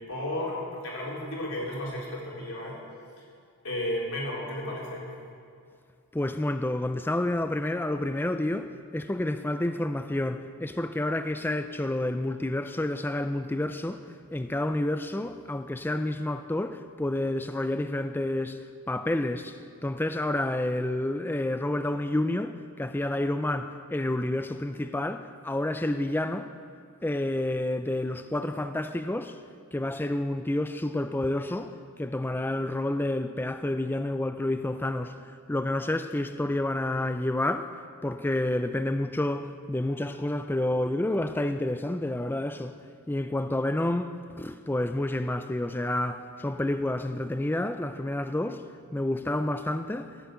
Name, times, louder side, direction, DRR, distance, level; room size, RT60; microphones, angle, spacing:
voice 1, 0.1-2.7 3.6-5.1, left 1 dB, 75° left, 3.9 m, -33 dB
voice 2, 6.1-14.0 14.3-18.6 18.9-26.5 27.0-29.4 29.7-35.2 35.5-37.7 38.0-42.7 43.1-48.6 48.9-50.1, left 1 dB, 10° left, 0.4 m, -29 dB
15.0 x 8.1 x 9.0 m
head